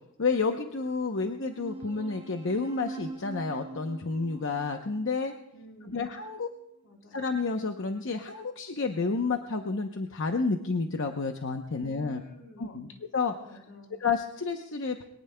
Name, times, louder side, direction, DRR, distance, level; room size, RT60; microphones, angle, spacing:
voice 1, 0.2-5.3 5.8-6.5 7.1-12.2 12.6-13.3 14.0-15.0, left 4 dB, 65° left, 5 dB, 0.8 m, -30 dB
sound 1, 1.4-6.3, right 3 dB, 30° right, 1.3 m, -44 dB
voice 2, 5.5-6.1 6.8-7.3 11.7-13.0 13.4-14.0, equal, 90° left, 0 dB, 3.8 m, -50 dB
22.5 x 19.0 x 2.3 m, 0.82 s
head